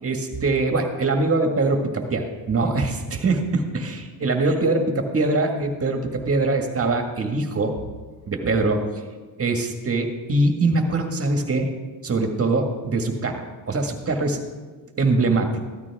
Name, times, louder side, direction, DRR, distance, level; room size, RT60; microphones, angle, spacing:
voice 1, 0.0-7.7 8.3-8.9 9.4-11.7 12.0-14.4 15.0-15.6, right 3 dB, 35° right, 4 dB, 1.8 m, -23 dB
15.0 x 12.5 x 3.6 m, 1.3 s
cardioid pair, 100°, 41 cm